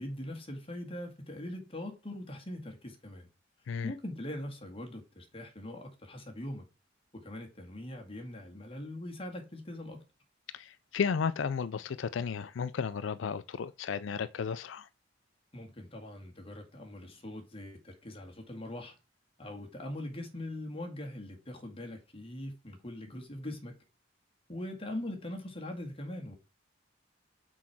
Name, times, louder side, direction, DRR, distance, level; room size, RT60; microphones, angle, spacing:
voice 1, 0.0-3.3 3.8-6.7 7.1-10.0 15.5-19.0 19.4-23.8 24.5-26.4, left 1 dB, 30° left, 1.9 m, -42 dB
voice 2, 10.5-14.9, left 6 dB, 80° left, 0.4 m, -33 dB
6.1 x 4.8 x 5.9 m
head